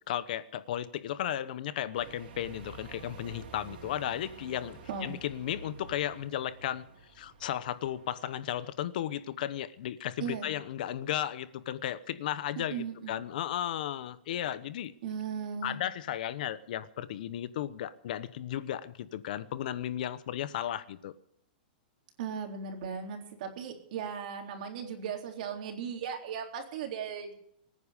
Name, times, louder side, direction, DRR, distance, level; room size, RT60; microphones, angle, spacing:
voice 1, 0.1-6.8 7.1-14.9 15.6-21.1, left 11 dB, 55° left, 1.0 m, -35 dB
sound 1, 1.9-8.6, right 4 dB, 75° right, 4.3 m, -50 dB
voice 2, 10.2-10.5 12.6-13.1 15.0-15.8 22.2-27.3, right 7 dB, 50° right, 3.7 m, -37 dB
24.0 x 9.8 x 5.2 m
supercardioid pair, 165°, 5 cm